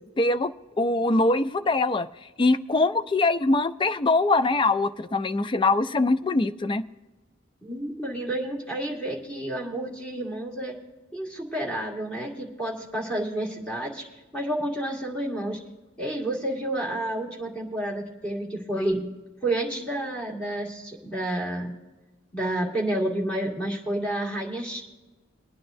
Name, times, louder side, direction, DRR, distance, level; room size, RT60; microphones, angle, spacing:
voice 1, 0.2-0.5 0.8-2.1 2.4-6.8, left 2 dB, 25° left, 12 dB, 0.3 m, -23 dB
voice 2, 7.6-10.7 11.1-14.0 14.3-15.6 16.0-19.0 19.4-21.7 22.3-24.8, right 1 dB, 5° left, -4 dB, 2.0 m, -30 dB
23.0 x 9.6 x 2.6 m, 1.2 s
head